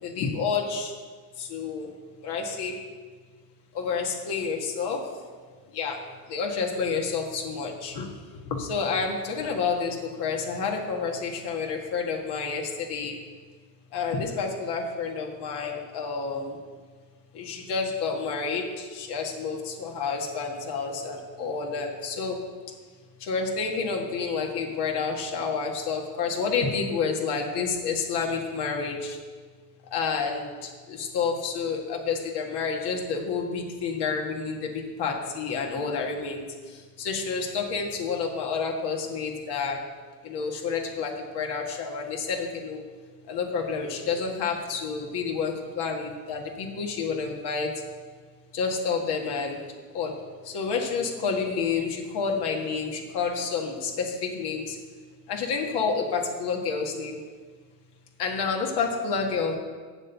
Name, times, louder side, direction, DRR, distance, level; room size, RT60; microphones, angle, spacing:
voice 1, 0.0-1.0 1.3-2.8 3.7-5.2 5.7-13.2 13.9-16.6 17.3-22.5 23.2-29.2 29.9-39.9 40.2-42.8 43.3-47.8 48.5-49.6 49.9-50.2 50.4-54.8 55.3-57.2 58.2-59.6, left 5 dB, 65° left, 1 dB, 1.9 m, -29 dB
7.8 x 7.3 x 6.9 m, 1.5 s
supercardioid pair, 80°, 43 cm